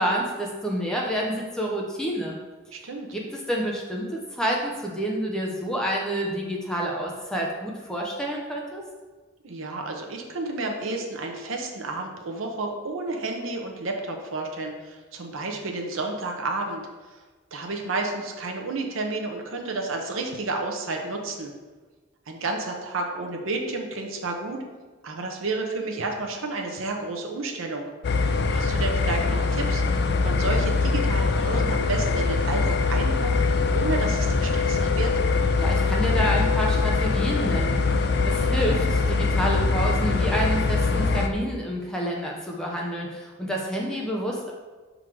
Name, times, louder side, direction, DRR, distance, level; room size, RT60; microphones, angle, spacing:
voice 1, 0.0-2.4 3.1-8.8 35.6-44.5, equal, 5° left, -2 dB, 0.7 m, -28 dB
voice 2, 2.7-3.1 9.4-17.2 17.5-21.5 22.3-24.6 25.0-27.8 28.5-33.3 33.7-35.1, right 3 dB, 80° right, 2 dB, 0.8 m, -31 dB
sound 1, 28.0-41.3, left 4 dB, 50° left, 0.4 m, -23 dB
6.1 x 3.9 x 4.6 m, 1.3 s
head